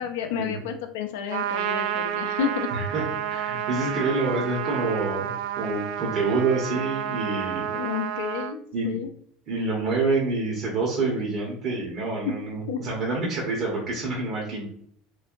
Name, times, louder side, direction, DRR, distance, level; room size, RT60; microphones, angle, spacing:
voice 1, 0.0-2.7 7.7-9.1 12.2-12.3 12.7-12.8, left 8 dB, 80° left, 6 dB, 0.4 m, -30 dB
Trumpet, 1.3-8.5, right 10 dB, 75° right, 0.3 m, -30 dB
voice 2, 2.7-7.7 8.7-9.0 9.5-14.7, right 3 dB, 55° right, -4 dB, 1.0 m, -27 dB
3.1 x 2.8 x 2.5 m, 0.62 s
hypercardioid pair, 95°, 0 cm